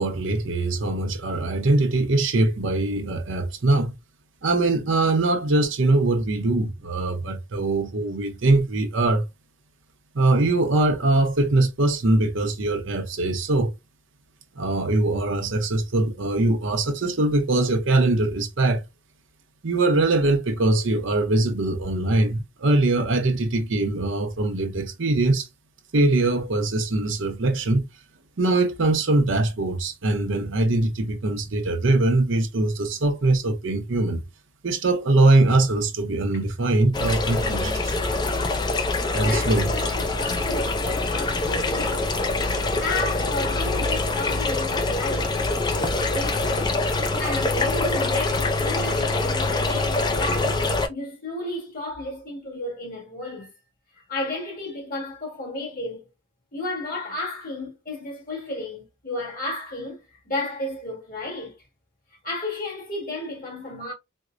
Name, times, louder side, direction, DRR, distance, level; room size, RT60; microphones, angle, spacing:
voice 1, 0.0-4.0 4.4-9.2 10.1-13.7 14.6-18.8 19.6-25.5 25.9-27.8 28.4-34.2 34.6-38.0 39.1-39.7, right 2 dB, 70° right, 0.7 m, -22 dB
sound 1, 36.9-50.9, left 3 dB, 20° left, 0.4 m, -24 dB
voice 2, 39.1-42.1 42.5-45.4 45.7-50.6 50.9-53.5 54.1-56.1 56.5-61.6 62.2-63.9, left 1 dB, 45° left, 1.5 m, -33 dB
4.4 x 2.0 x 2.5 m
head